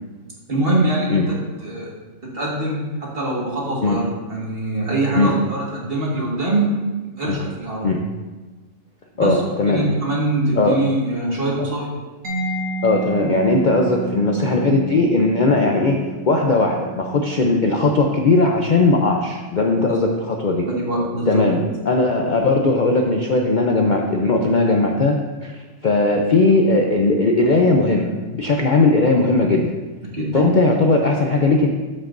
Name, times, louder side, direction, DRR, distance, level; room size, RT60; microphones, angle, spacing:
voice 1, 0.5-1.9 2.2-6.8 7.0-8.0 9.1-9.4 9.7-11.9 19.9-20.0 20.8-21.5 30.0-30.5, right 1 dB, 45° right, -4 dB, 1.9 m, -23 dB
voice 2, 9.2-9.8 10.6-10.8 12.8-16.0 16.3-20.7 21.3-25.2 25.4-29.7 30.3-31.7, left 2 dB, 50° left, 1 dB, 0.6 m, -18 dB
Mallet percussion, 12.2-19.8, right 3 dB, 75° right, 1.5 m, -32 dB
13.0 x 5.6 x 2.6 m, 1.3 s
omnidirectional pair, 1.4 m